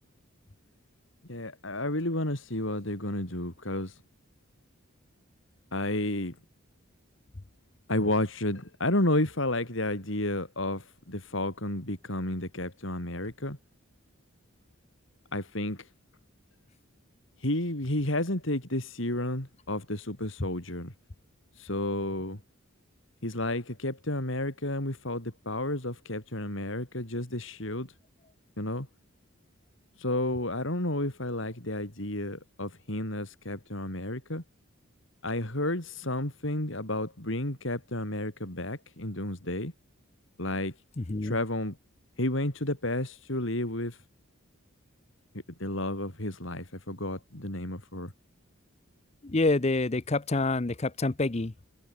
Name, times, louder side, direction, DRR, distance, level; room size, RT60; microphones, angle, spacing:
voice 1, 1.3-4.0 5.7-6.4 7.9-13.6 15.3-15.9 17.4-20.9 21.6-22.4 23.2-27.9 28.6-28.9 30.0-34.4 35.2-39.7 40.4-40.7 41.2-41.8 42.2-44.0 45.6-48.1, left 1 dB, 60° left, 4.0 m, -31 dB
voice 2, 41.0-41.4 49.2-51.5, left 2 dB, 30° left, 0.7 m, -27 dB
head